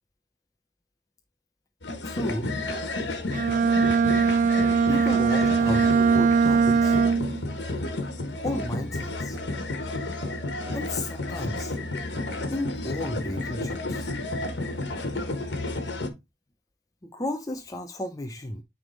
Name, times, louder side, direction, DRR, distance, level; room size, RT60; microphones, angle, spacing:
sound 1, 1.8-16.1, left 2 dB, 90° left, 1.4 m, -31 dB
voice 1, 2.0-2.5 4.9-7.0 8.4-9.4 10.7-11.8 12.5-14.1 17.0-18.6, left 1 dB, 20° left, 0.6 m, -33 dB
Bowed string instrument, 3.3-7.4, right 5 dB, 45° right, 0.3 m, -21 dB
9.4 x 3.5 x 4.0 m
head